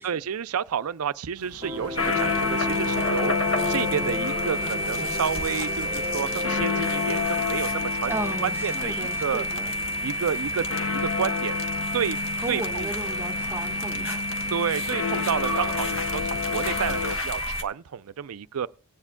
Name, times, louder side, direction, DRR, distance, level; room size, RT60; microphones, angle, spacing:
voice 1, 0.0-3.3 3.7-8.2 8.4-9.4 10.0-10.6 10.9-11.6 11.9-12.2 12.5-12.9 14.5-18.7, right 7 dB, 80° right, 0.5 m, -30 dB
sound 1, 1.4-17.2, left 6 dB, 80° left, 0.6 m, -31 dB
Piano, 1.6-7.3, left 1 dB, 25° right, 1.7 m, -34 dB
sound 2, 2.0-17.6, equal, 60° left, 1.2 m, -30 dB
voice 2, 8.0-9.8 12.4-14.4, right 1 dB, 10° right, 1.3 m, -35 dB
17.5 x 9.8 x 2.2 m
head